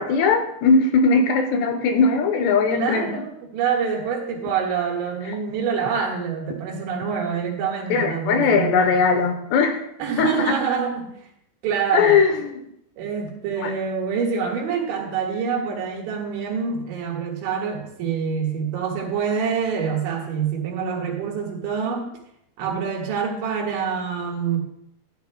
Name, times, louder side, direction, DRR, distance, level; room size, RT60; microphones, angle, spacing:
voice 1, 0.0-3.2 7.9-9.8 10.2-10.5 11.9-12.6 13.6-13.7, left 4 dB, 80° left, 6 dB, 2.9 m, -19 dB
voice 2, 2.7-8.8 10.0-11.1 11.6-12.2 13.0-22.1 22.6-24.6, right 6 dB, 90° right, -1 dB, 4.2 m, -26 dB
14.5 x 10.5 x 2.3 m, 0.74 s
omnidirectional pair, 5.1 m